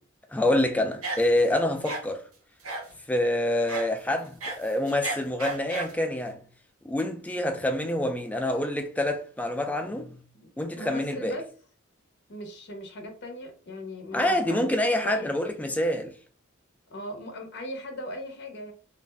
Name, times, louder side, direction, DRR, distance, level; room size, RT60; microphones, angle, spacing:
voice 1, 0.3-2.2 3.1-6.4 6.8-10.2 10.6-11.4 14.1-16.1, left 1 dB, 5° left, 0.3 m, -26 dB
sound 1, 1.0-1.5 1.8-2.0 2.6-2.9 3.7-3.9 4.3-6.0, right 3 dB, 80° right, 0.8 m, -34 dB
voice 2, 10.3-11.5 12.3-14.7 15.0-15.3 16.9-18.7, left 1 dB, 55° left, 0.7 m, -38 dB
2.5 x 2.1 x 3.2 m
head